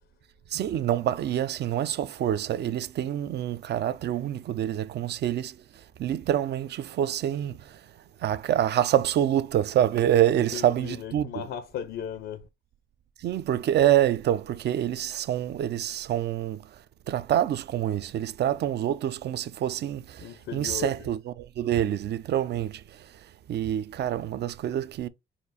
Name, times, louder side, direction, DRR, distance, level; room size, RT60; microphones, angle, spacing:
voice 1, 0.5-5.5 6.0-7.5 8.2-11.3 13.2-16.6 17.1-20.0 20.5-22.7 23.5-25.1, right 11 dB, 60° right, 0.4 m, -26 dB
voice 2, 10.3-12.5 20.2-21.1, left 9 dB, 80° left, 0.5 m, -37 dB
4.3 x 2.4 x 3.9 m
cardioid pair, 90°, 20 cm